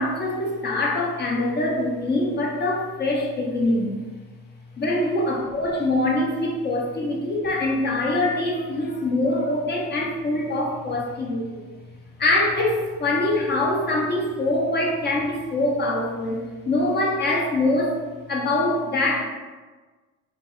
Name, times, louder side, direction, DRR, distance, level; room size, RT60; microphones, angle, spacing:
voice 1, 0.0-4.0 4.8-11.7 12.2-18.0 18.3-19.2, left 2 dB, 30° left, -2 dB, 0.5 m, -24 dB
2.3 x 2.3 x 2.9 m, 1.3 s
cardioid pair, 110°, 34 cm